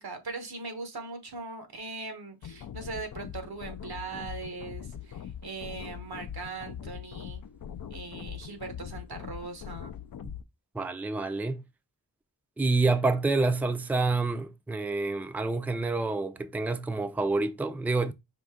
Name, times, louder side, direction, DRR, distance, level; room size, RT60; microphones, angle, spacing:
voice 1, 0.0-7.4 7.9-9.9, right 3 dB, 85° right, 1.1 m, -40 dB
sound 1, 2.4-10.4, left 9 dB, 65° left, 0.5 m, -42 dB
voice 2, 10.7-11.6 12.6-18.1, right 3 dB, 5° right, 0.4 m, -28 dB
5.1 x 2.7 x 3.6 m
wide cardioid pair, 60°, 37 cm